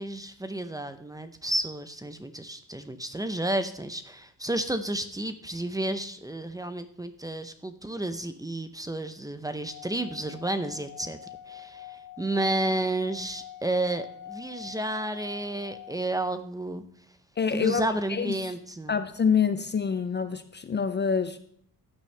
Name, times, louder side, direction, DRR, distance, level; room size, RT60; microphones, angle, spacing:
voice 1, 0.0-11.2 11.5-16.8 17.5-19.0, right 1 dB, 10° right, 0.6 m, -31 dB
Singing / Glass, 9.7-16.2, left 11 dB, 55° left, 0.9 m, -45 dB
voice 2, 17.4-17.8 18.1-18.5 18.9-21.4, left 6 dB, 30° left, 0.5 m, -26 dB
14.0 x 9.3 x 3.3 m
wide cardioid pair, 160°, 37 cm